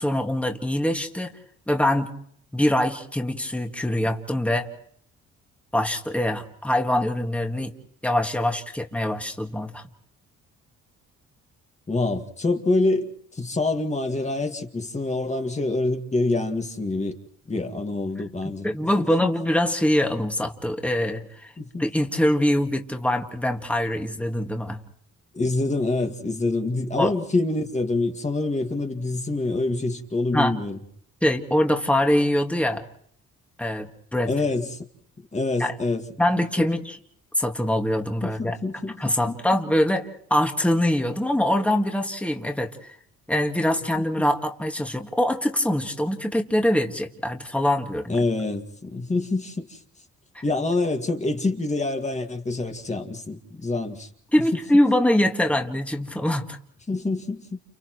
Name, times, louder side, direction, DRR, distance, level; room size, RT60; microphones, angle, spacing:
voice 1, 0.0-1.3 1.7-2.1 2.5-4.7 5.7-7.7 8.0-9.8 18.4-21.5 21.8-24.8 27.0-27.1 30.3-30.6 31.2-32.8 33.6-34.3 35.6-35.7 36.2-37.0 37.4-38.6 39.0-43.0 43.3-48.2 50.4-50.5 54.3-56.6, left 1 dB, 5° left, 3 dB, 1.9 m, -23 dB
voice 2, 11.9-17.2 17.5-18.7 19.0-19.3 21.6-21.8 25.3-30.8 34.3-34.9 35.3-36.0 36.4-36.7 38.2-39.1 44.0-44.1 48.1-49.8 50.4-54.1 56.9-57.6, left 2 dB, 25° left, 4 dB, 1.9 m, -26 dB
30.0 x 29.5 x 3.1 m, 0.65 s
cardioid pair, 90°, 30 cm